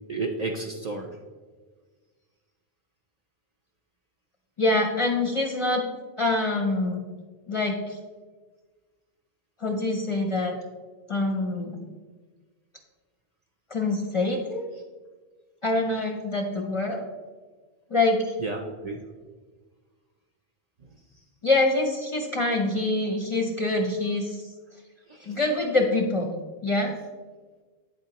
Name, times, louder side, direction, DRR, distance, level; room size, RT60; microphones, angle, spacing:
voice 1, 0.1-1.1 18.4-19.0 20.8-20.9 25.1-25.4, right 3 dB, 55° right, 2 dB, 0.5 m, -32 dB
voice 2, 4.6-5.8 6.2-7.0 7.5-8.0 9.6-10.6 11.1-11.9 13.7-14.7 15.6-17.0 17.9-18.3 21.4-24.5 25.3-26.3 26.6-26.9, left 2 dB, 40° left, 2 dB, 0.5 m, -25 dB
8.8 x 3.9 x 2.9 m, 1.4 s
omnidirectional pair, 1.1 m